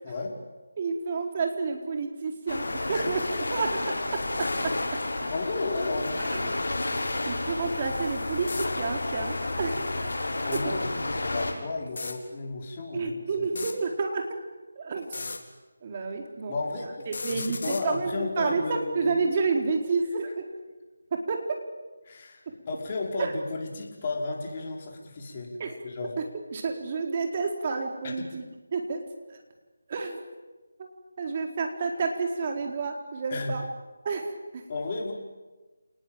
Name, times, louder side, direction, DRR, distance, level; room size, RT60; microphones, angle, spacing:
voice 1, 0.8-3.2 3.5-5.0 6.3-6.5 7.3-9.8 10.5-10.6 12.9-14.3 14.8-15.1 15.8-16.5 16.8-20.4 21.1-21.6 23.2-23.3 25.6-25.8 26.2-26.3 26.5-29.0 29.3-29.4 29.9-30.2 31.2-33.6 34.0-34.6, right 4 dB, 35° right, 3 dB, 4.5 m, -30 dB
sound 1, 2.5-11.5, left 2 dB, 70° left, 6.8 m, -31 dB
voice 2, 5.3-6.6 10.4-13.2 13.5-13.7 16.5-19.1 22.1-25.6 25.8-26.1 28.0-28.2 33.3-33.5 34.7-35.1, left 3 dB, 30° left, 0 dB, 5.4 m, -33 dB
sound 2, 8.5-8.7 10.4-10.6 11.9-12.2 13.4-13.8 15.0-15.4 17.0-17.8, left 3 dB, 55° left, 3.8 m, -35 dB
29.5 x 20.0 x 9.1 m, 1.2 s
figure-of-eight pair, 165°, 0 cm